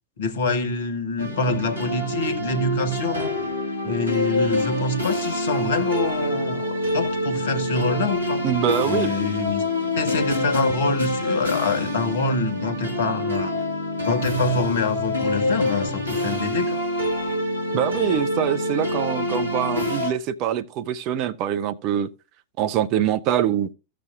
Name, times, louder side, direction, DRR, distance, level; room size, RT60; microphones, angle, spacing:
voice 1, 0.2-3.3 3.8-8.4 8.8-13.5 14.0-16.8, left 3 dB, 60° left, 1.2 m, -25 dB
sound 1, 1.2-20.1, left 1 dB, 80° right, 1.7 m, -26 dB
voice 2, 8.4-9.1 17.7-22.1 22.6-23.7, right 10 dB, 40° right, 0.5 m, -24 dB
15.0 x 6.8 x 2.4 m
figure-of-eight pair, 90°, 0 cm